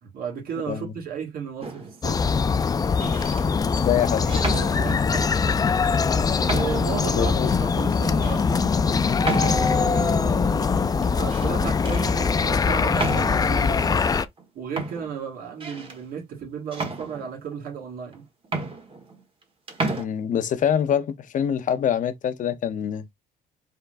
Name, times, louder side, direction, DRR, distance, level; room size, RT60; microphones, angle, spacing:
voice 1, 0.0-2.3 3.0-3.2 4.7-5.3 6.2-9.0 9.4-14.0 14.5-18.3, right 6 dB, 60° right, 1.8 m, -34 dB
sound 1, 1.6-2.0 2.9-3.5 4.3-5.3 5.9-6.0 6.5-7.0 7.5-7.6 8.2-8.4 9.2-9.9 11.0-11.5 11.8-12.2 13.0-13.6 14.4-14.5 14.8-16.0 16.7-17.6 18.1-18.2 18.4-19.4 19.7-20.0, right 2 dB, 30° right, 1.6 m, -32 dB
sound 2, 2.0-14.3, left 5 dB, 20° left, 0.4 m, -22 dB
voice 2, 3.6-4.4 7.1-7.6 20.0-23.0, left 9 dB, 50° left, 0.8 m, -25 dB
4.6 x 3.7 x 2.5 m
cardioid pair, 110°, 17 cm